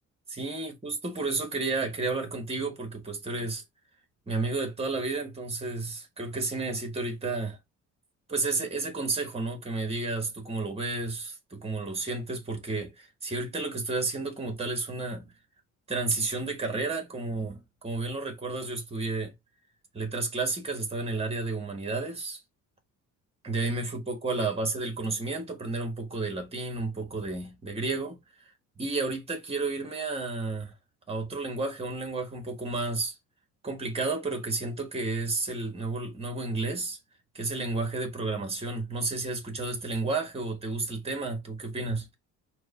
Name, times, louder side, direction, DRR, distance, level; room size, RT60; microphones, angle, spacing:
voice 1, 0.3-3.6 4.3-7.6 8.3-15.3 15.9-19.3 19.9-22.4 23.4-28.5 28.8-30.7 31.1-33.2 33.6-37.0 37.3-42.1, right 3 dB, 20° right, 1.1 m, -32 dB
4.6 x 2.2 x 4.0 m
cardioid pair, 145°, 31 cm